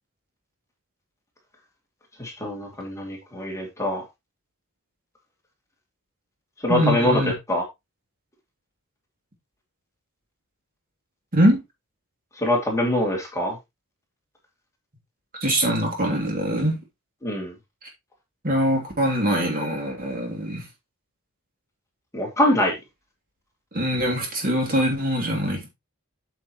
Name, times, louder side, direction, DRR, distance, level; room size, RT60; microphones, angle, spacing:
voice 1, 2.2-4.0 6.6-7.2 7.5-7.6 12.3-13.6 17.2-17.5 22.1-22.8, left 1 dB, 15° left, 2.6 m, -23 dB
voice 2, 6.7-7.3 11.3-11.6 15.4-16.8 18.4-20.6 23.7-25.7, equal, 40° right, 3.0 m, -23 dB
8.3 x 7.2 x 3.1 m
head